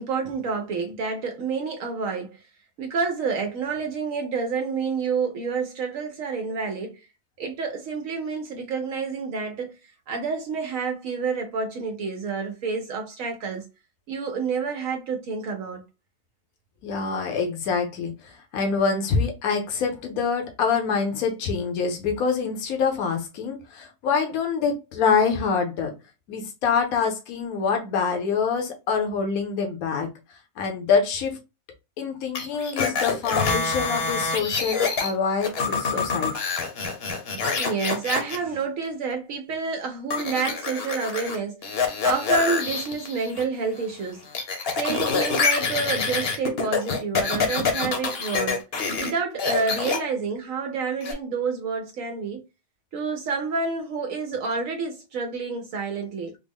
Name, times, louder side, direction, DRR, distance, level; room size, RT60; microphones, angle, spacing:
voice 1, 0.0-2.4 2.8-7.1 7.4-9.8 10.1-13.7 14.1-15.8 37.6-44.2 44.8-48.6 49.0-52.4 52.9-56.4, right 5 dB, 70° right, 1.0 m, -29 dB
voice 2, 16.8-25.9 26.3-30.1 30.6-31.4 32.0-36.3, left 5 dB, 80° left, 1.2 m, -25 dB
sound 1, 32.3-35.1 35.4-38.4 40.1-41.4 41.6-43.4 43.8-49.1 49.4-50.0 51.0-51.1, left 5 dB, 50° left, 0.9 m, -26 dB
3.6 x 2.0 x 3.4 m
omnidirectional pair, 1.5 m